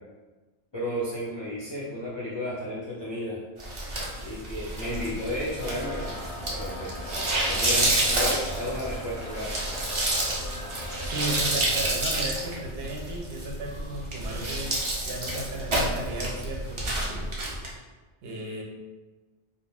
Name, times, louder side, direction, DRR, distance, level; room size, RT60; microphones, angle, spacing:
voice 1, 0.7-3.4 4.2-6.1 6.5-7.1 7.5-9.5, left 1 dB, 35° left, -8 dB, 0.4 m, -33 dB
sound 1, 3.6-17.7, right 1 dB, 45° right, 0.4 m, -29 dB
sound 2, 5.6-12.0, left 1 dB, 90° left, 0.9 m, -40 dB
voice 2, 11.0-14.8 15.1-17.2 18.2-18.6, right 2 dB, 70° right, -1 dB, 0.8 m, -35 dB
2.4 x 2.1 x 3.2 m, 1.2 s
omnidirectional pair, 1.1 m